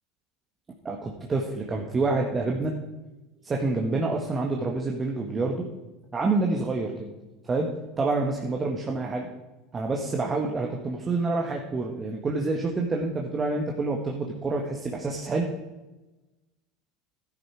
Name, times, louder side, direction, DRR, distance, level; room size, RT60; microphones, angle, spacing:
voice 1, 0.8-2.7 3.4-5.7 6.1-7.1 7.4-7.7 8.0-9.3 9.7-15.4, right 3 dB, 25° right, 0 dB, 1.7 m, -27 dB
13.0 x 10.5 x 4.9 m, 1.1 s
hypercardioid pair, 80°, 0 cm